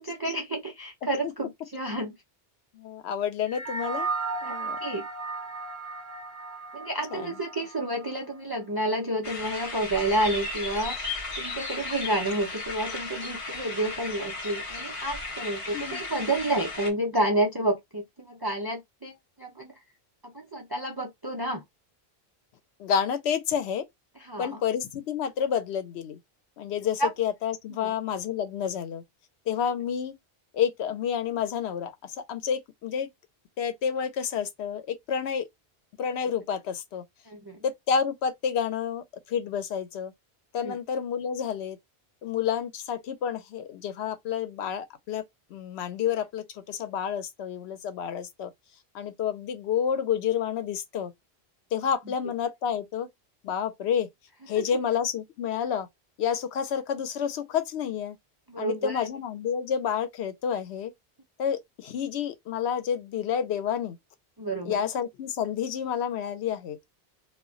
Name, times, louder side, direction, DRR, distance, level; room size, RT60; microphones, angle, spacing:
voice 1, 0.0-2.1 4.4-5.0 6.7-11.0 11.4-19.1 19.4-19.7 20.3-21.6 24.3-24.5 27.0-27.1 27.8-27.9 37.3-37.6 40.6-40.8 58.5-59.1 64.4-64.8, right 1 dB, 30° right, 0.4 m, -30 dB
voice 2, 2.7-4.1 4.4-4.8 7.1-7.4 15.7-16.0 22.8-23.9 24.4-26.2 26.6-29.0 29.5-30.2 30.5-33.1 33.6-35.5 36.0-37.0 37.6-40.1 40.5-41.8 42.2-45.2 45.5-48.5 48.9-51.1 51.7-53.1 53.4-54.1 54.5-55.9 56.2-58.2 58.6-60.9 61.4-64.0 64.6-66.8, left 8 dB, 80° left, 0.8 m, -29 dB
sound 1, 3.5-8.1, right 4 dB, 75° right, 0.9 m, -35 dB
sound 2, 9.2-16.9, left 2 dB, 35° left, 0.7 m, -35 dB
2.2 x 2.1 x 3.6 m
omnidirectional pair, 1.1 m